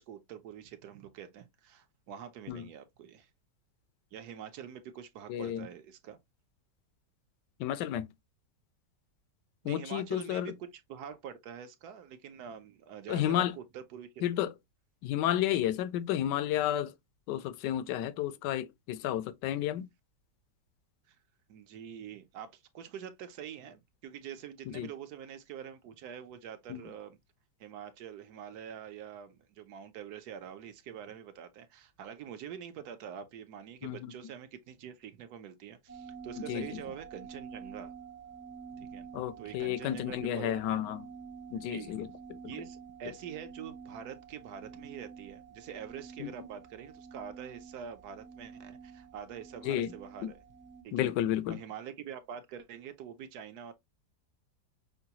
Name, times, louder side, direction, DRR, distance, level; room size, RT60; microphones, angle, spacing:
voice 1, 0.0-3.3 4.1-6.2 9.6-14.1 21.1-21.2 21.5-27.2 27.6-37.9 38.8-39.1 39.4-40.8 41.5-42.0 42.4-50.4 50.8-51.1 51.5-53.7, right 8 dB, 70° right, 1.1 m, -45 dB
voice 2, 5.3-5.7 7.6-8.1 9.6-10.5 13.1-13.5 14.2-14.5 15.0-16.9 17.3-19.9 24.8-24.9 26.7-26.8 33.8-34.1 36.5-36.7 39.1-41.0 41.5-42.1 46.2-46.3 49.6-49.9 50.2-50.3 50.9-51.6, left 12 dB, 80° left, 1.2 m, -31 dB
sound 1, 35.9-50.8, right 6 dB, 15° right, 0.3 m, -48 dB
5.7 x 2.3 x 2.7 m
omnidirectional pair, 1.8 m